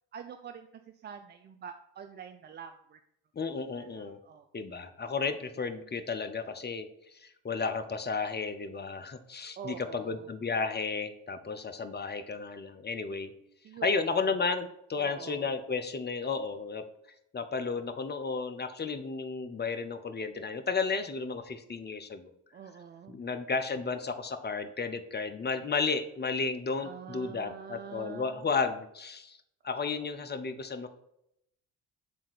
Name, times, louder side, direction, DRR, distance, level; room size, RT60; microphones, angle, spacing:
voice 1, 0.1-0.7 1.0-3.0 3.5-4.5 9.6-10.3 13.6-14.2 14.9-15.5 22.5-23.2 26.8-28.5 29.8-30.0, right 7 dB, 25° right, 7 dB, 0.3 m, -45 dB
voice 2, 3.3-4.2 4.5-13.3 13.8-16.9 17.3-22.3 23.1-29.4 29.6-30.9, left 4 dB, 20° left, 8 dB, 0.7 m, -33 dB
7.1 x 3.6 x 4.3 m, 0.78 s
hypercardioid pair, 50°, 47 cm